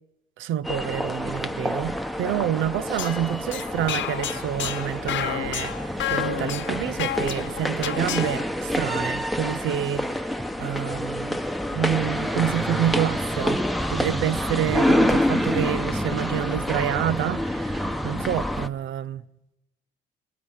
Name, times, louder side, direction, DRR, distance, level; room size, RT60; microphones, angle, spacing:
voice 1, 0.4-10.3 10.6-11.4 11.7-13.6 13.9-19.2, right 11 dB, 80° right, 0.7 m, -28 dB
sound 1, 0.6-18.7, left 1 dB, ahead, 1.0 m, -27 dB
sound 2, 2.7-8.4, left 11 dB, 70° left, 1.1 m, -31 dB
28.0 x 21.0 x 5.7 m
cardioid pair, 90°, 20 cm